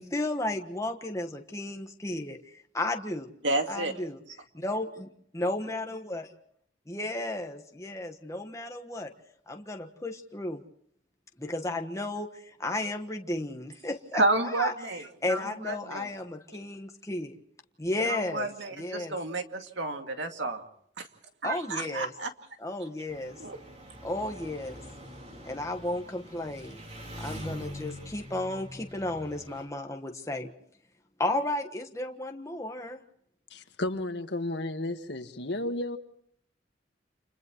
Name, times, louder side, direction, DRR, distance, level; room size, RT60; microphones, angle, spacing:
voice 1, 0.0-3.3 3.7-4.2 4.6-4.9 5.3-6.3 6.9-9.1 9.5-10.6 11.4-14.7 15.2-17.4 17.8-18.5 18.8-19.2 21.4-22.1 22.6-23.4 24.0-24.8 25.4-26.8 27.2-30.5 31.2-33.0, left 2 dB, 15° left, 4 dB, 1.3 m, -33 dB
voice 2, 3.4-3.9 14.1-16.1 16.5-16.6 18.0-20.6 21.0-21.1 21.4-22.3 23.4-23.6, right 2 dB, 75° right, 5 dB, 2.4 m, -31 dB
Engine, 23.1-29.6, equal, 35° right, 3.9 m, -43 dB
voice 3, 33.5-36.0, left 1 dB, 65° left, 8 dB, 1.6 m, -33 dB
30.0 x 28.5 x 3.1 m, 0.69 s
head